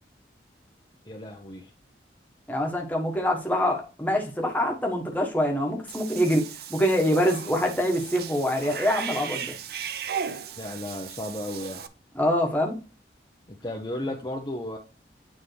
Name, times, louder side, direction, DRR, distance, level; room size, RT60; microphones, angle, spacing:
voice 1, 1.1-1.7 10.6-11.8 13.5-14.8, left 1 dB, 25° left, 0 dB, 0.7 m, -34 dB
voice 2, 2.5-9.5 12.1-12.7, equal, 10° left, 0 dB, 1.3 m, -25 dB
Cat / Bathtub (filling or washing), 5.9-11.9, right 7 dB, 60° right, 0.5 m, -36 dB
9.0 x 3.7 x 3.3 m, 0.35 s
head